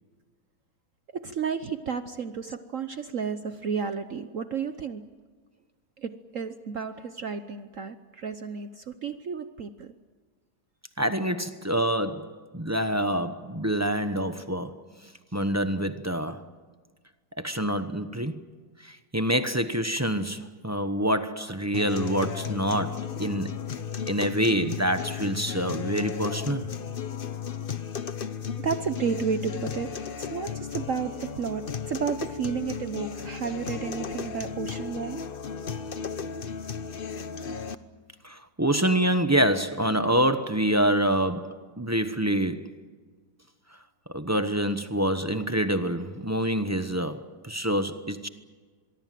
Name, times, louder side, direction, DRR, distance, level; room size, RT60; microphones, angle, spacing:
voice 1, 1.1-5.0 6.0-9.9 28.6-35.2, right 6 dB, 55° right, 1.2 m, -32 dB
voice 2, 11.0-16.5 17.4-18.4 18.8-23.6 24.1-26.7 38.2-42.7 44.1-48.3, right 1 dB, 15° right, 0.7 m, -26 dB
sound 1, 21.7-37.8, left 7 dB, 40° left, 0.9 m, -34 dB
25.5 x 23.0 x 7.6 m
omnidirectional pair, 1.9 m